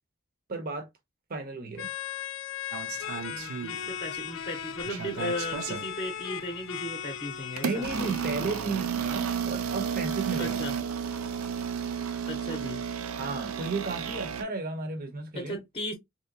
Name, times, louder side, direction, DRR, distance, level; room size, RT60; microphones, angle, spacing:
voice 1, 0.5-0.9 1.3-1.9 7.6-10.6 13.2-15.6, right 3 dB, 45° right, 0.7 m, -33 dB
sound 1, 1.7-8.6, left 9 dB, 65° left, 0.4 m, -37 dB
sound 2, 2.7-4.2 4.5-5.9 6.6-6.8 7.6-14.4, right 7 dB, 85° right, 0.4 m, -33 dB
voice 2, 3.3-7.8 10.4-10.7 12.3-12.8 15.3-15.9, left 1 dB, 25° left, 0.7 m, -36 dB
3.2 x 2.7 x 2.6 m
head